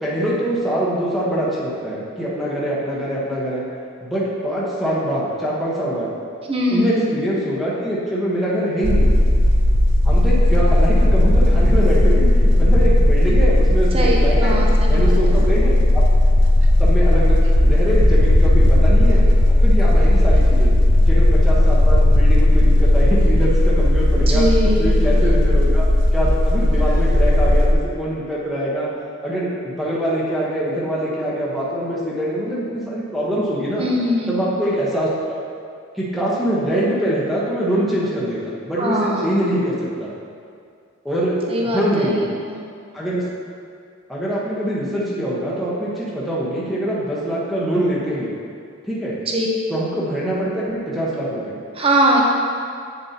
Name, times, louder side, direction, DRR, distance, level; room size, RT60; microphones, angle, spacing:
voice 1, 0.0-3.6 4.0-6.1 6.7-9.1 10.0-14.6 14.9-16.0 16.8-19.3 19.6-20.7 21.1-28.9 29.2-33.9 34.3-35.4 35.9-39.7 40.0-40.1 41.0-42.3 42.9-43.2 44.1-48.3 48.8-49.2 49.7-51.6, right 1 dB, ahead, -9 dB, 1.1 m, -24 dB
voice 2, 6.5-7.1 13.9-15.5 24.3-24.9 33.8-34.4 38.8-39.4 41.5-42.5 49.2-49.5 51.7-52.2, right 1 dB, 25° right, -2 dB, 0.9 m, -21 dB
sound 1, 8.8-27.7, left 1 dB, 60° right, 0.6 m, -15 dB
8.7 x 7.0 x 2.9 m, 2.3 s
head